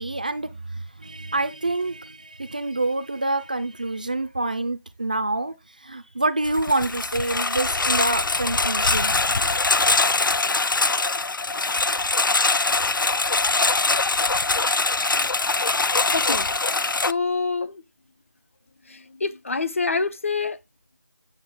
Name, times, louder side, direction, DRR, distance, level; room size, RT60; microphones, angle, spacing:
voice 1, 0.0-5.5 5.8-9.1, right 2 dB, 25° right, 0.4 m, -27 dB
Engine, 6.4-17.1, left 3 dB, 90° left, 0.5 m, -22 dB
voice 2, 16.1-16.5 17.1-17.8 18.9-20.6, left 4 dB, 40° left, 0.7 m, -26 dB
8.6 x 6.0 x 3.7 m
figure-of-eight pair, 170°, 11 cm